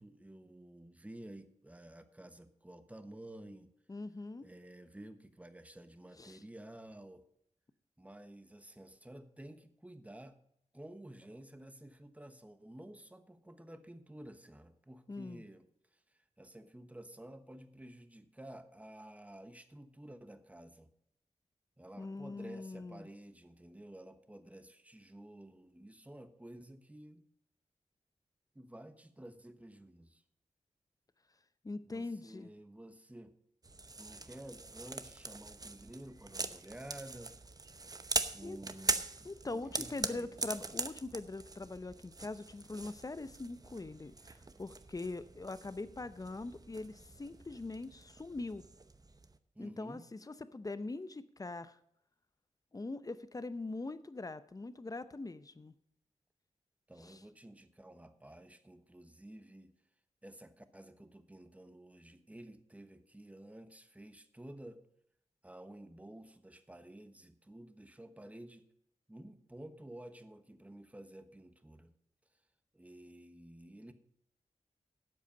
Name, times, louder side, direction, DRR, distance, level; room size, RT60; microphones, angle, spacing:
voice 1, 0.0-3.7 4.4-7.2 8.0-10.4 10.7-15.6 15.9-20.9 21.8-27.2 28.5-30.2 31.8-33.3 34.0-37.3 38.3-40.4 40.7-40.8 49.5-50.1 56.9-59.7 60.2-64.8 65.4-68.6 69.1-71.9 72.7-73.9, right 1 dB, 10° right, 10 dB, 1.2 m, -52 dB
voice 2, 3.9-4.5 6.2-6.4 15.1-15.4 22.0-23.1 31.6-32.5 38.4-38.6 39.2-48.7 49.6-51.8 52.7-55.7 57.0-57.2, left 3 dB, 30° left, 14 dB, 0.7 m, -42 dB
sound 1, 33.6-49.4, right 3 dB, 30° right, 0.8 m, -42 dB
12.5 x 8.2 x 5.1 m, 0.72 s
wide cardioid pair, 85°, 12 cm